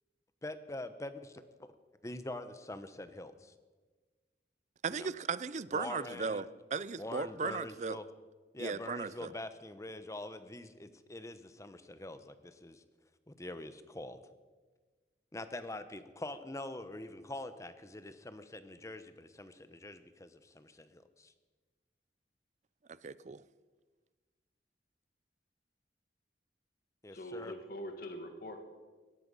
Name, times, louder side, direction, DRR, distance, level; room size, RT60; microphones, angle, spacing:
voice 1, 0.4-1.7 2.0-3.5 4.9-5.1 5.7-6.4 7.0-8.1 8.5-12.8 13.3-14.2 15.3-21.3 27.0-27.5, left 2 dB, 20° left, 11 dB, 0.9 m, -44 dB
voice 2, 4.8-8.0 8.6-9.3 23.0-23.4, right 5 dB, 40° right, 18 dB, 0.5 m, -37 dB
voice 3, 27.1-28.6, equal, 55° left, 5 dB, 1.9 m, -43 dB
17.5 x 13.5 x 5.5 m, 1.3 s
head